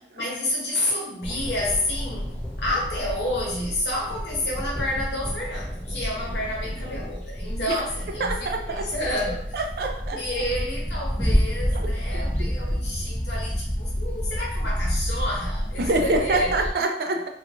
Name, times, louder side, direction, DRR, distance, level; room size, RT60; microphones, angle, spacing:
voice 1, 0.1-2.3 2.6-9.6 10.1-16.5, left 1 dB, 75° left, -4 dB, 1.0 m, -30 dB
sound 1, 1.2-16.7, equal, 5° left, 0.4 m, -29 dB
voice 2, 8.2-8.9 9.5-10.3 11.7-11.9 12.4-12.5 15.8-17.3, right 2 dB, 60° right, 4 dB, 0.4 m, -25 dB
2.4 x 2.4 x 2.8 m, 0.73 s
head